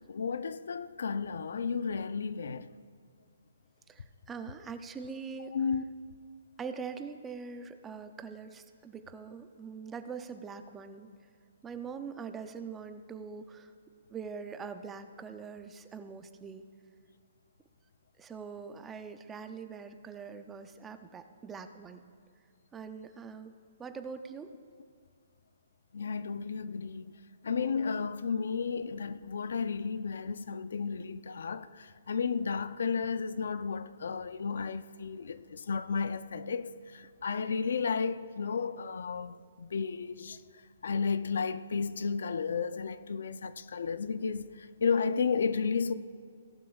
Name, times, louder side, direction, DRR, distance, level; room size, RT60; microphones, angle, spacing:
voice 1, 0.0-2.7 5.5-5.9 25.9-27.1 27.4-40.4 40.8-45.9, left 5 dB, 75° left, 0.5 m, -33 dB
voice 2, 3.9-5.5 6.6-11.1 11.6-13.7 14.1-16.6 18.2-22.0 22.7-23.5 23.8-24.5, right 5 dB, 10° right, 0.5 m, -43 dB
17.5 x 11.5 x 2.4 m
hypercardioid pair, 165°, 0 cm